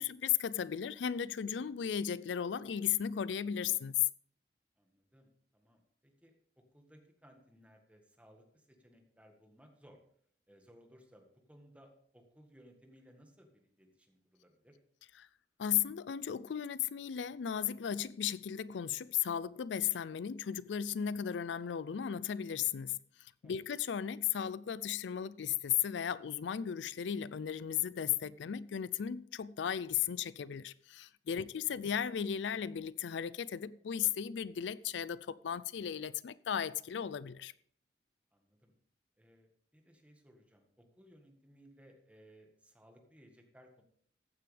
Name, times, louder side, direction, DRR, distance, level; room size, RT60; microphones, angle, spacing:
voice 1, 0.0-4.0 15.6-37.5, left 9 dB, 90° left, 0.4 m, -35 dB
voice 2, 4.8-6.3 6.7-10.0 10.5-14.8 23.4-23.6 31.3-31.7 38.3-38.7 39.2-43.8, equal, 10° right, 1.6 m, -62 dB
14.5 x 9.3 x 3.4 m
head